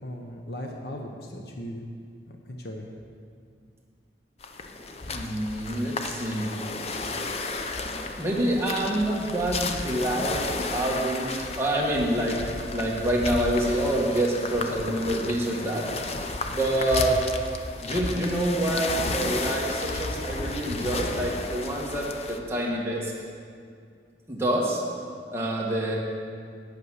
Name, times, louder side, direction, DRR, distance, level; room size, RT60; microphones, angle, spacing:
voice 1, 0.0-1.9 2.3-2.9, equal, 60° left, 1 dB, 0.9 m, -37 dB
sound 1, 4.4-22.4, left 3 dB, 35° left, 0.5 m, -33 dB
voice 2, 5.1-6.5 7.9-10.4 10.7-15.9 16.5-17.2 17.8-23.1 24.3-24.8 25.3-26.0, right 1 dB, 15° right, -4 dB, 1.6 m, -27 dB
8.7 x 8.3 x 6.4 m, 2.2 s
head